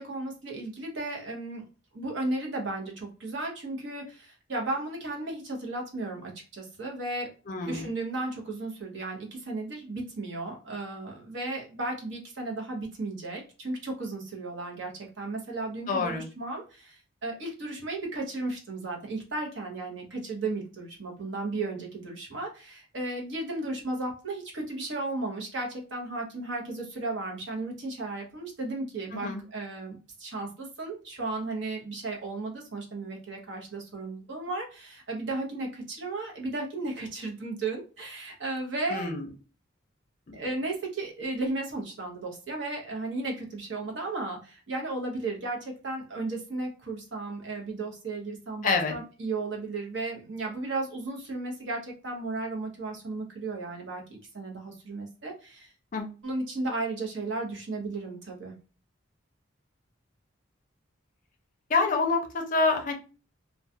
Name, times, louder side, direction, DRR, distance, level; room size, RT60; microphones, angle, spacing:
voice 1, 0.0-1.6 1.9-7.3 7.6-39.1 40.3-55.7 56.2-58.5, right 2 dB, 65° right, 0 dB, 0.8 m, -34 dB
voice 2, 7.5-7.9 15.9-16.2 29.1-29.4 38.9-39.3 40.3-40.4 48.6-48.9 55.9-56.1 61.7-62.9, left 3 dB, 40° left, 3 dB, 0.5 m, -27 dB
2.3 x 2.2 x 2.6 m, 0.34 s
head